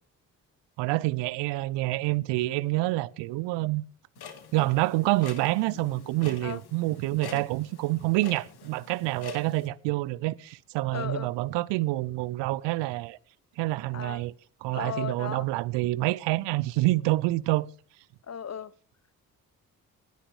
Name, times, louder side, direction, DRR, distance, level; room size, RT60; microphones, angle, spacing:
voice 1, 0.8-3.8 4.5-13.2 13.6-14.3 14.6-17.7, right 19 dB, 75° right, 0.7 m, -27 dB
Clock, 4.2-9.7, left 7 dB, 60° left, 2.2 m, -46 dB
voice 2, 10.9-11.3 13.9-14.2 14.7-15.5 18.3-18.7, left 7 dB, 35° left, 0.9 m, -36 dB
18.5 x 9.8 x 4.8 m
hypercardioid pair, 40°, 44 cm